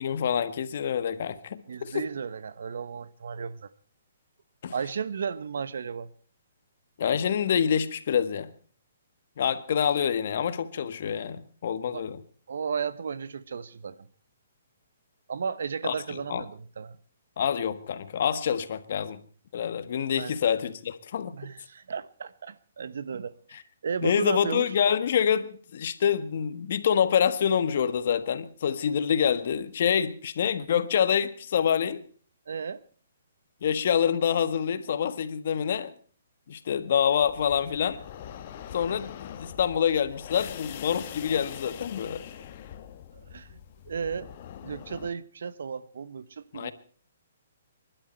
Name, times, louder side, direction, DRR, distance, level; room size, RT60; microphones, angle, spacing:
voice 1, 0.0-2.0 4.6-4.7 7.0-8.5 9.4-12.2 15.8-16.4 17.4-19.2 19.5-21.3 23.5-23.6 24.0-32.0 33.6-35.9 36.5-38.0 38.7-42.2 46.5-46.7, left 8 dB, 55° left, 1.5 m, -26 dB
voice 2, 1.7-3.7 4.7-6.1 11.9-12.0 12.5-14.1 15.3-17.0 20.2-20.4 21.3-23.6 23.8-24.7 32.5-32.8 43.3-43.6 43.9-44.3 44.6-46.7, right 6 dB, 70° right, 1.1 m, -34 dB
sound 1, 37.2-45.1, left 10 dB, 40° left, 1.6 m, -43 dB
27.0 x 12.0 x 4.4 m
hypercardioid pair, 160°, 0 cm